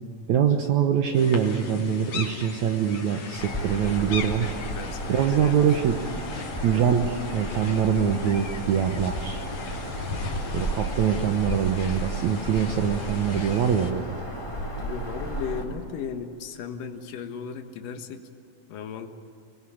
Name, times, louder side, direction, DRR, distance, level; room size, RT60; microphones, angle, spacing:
voice 1, 0.3-4.6 5.1-6.0 6.6-9.4 10.5-14.2, right 8 dB, 65° right, 5 dB, 2.2 m, -24 dB
sound 1, 1.1-13.9, left 4 dB, 55° left, 3.8 m, -39 dB
Bird vocalization bird call bird song, 3.4-15.6, right 1 dB, 10° left, 3.7 m, -33 dB
voice 2, 4.6-6.1 6.7-6.8 11.2-11.4 14.8-18.2 18.7-19.1, left 7 dB, 80° left, 6 dB, 3.0 m, -36 dB
26.0 x 21.0 x 8.7 m, 2.6 s
omnidirectional pair, 4.0 m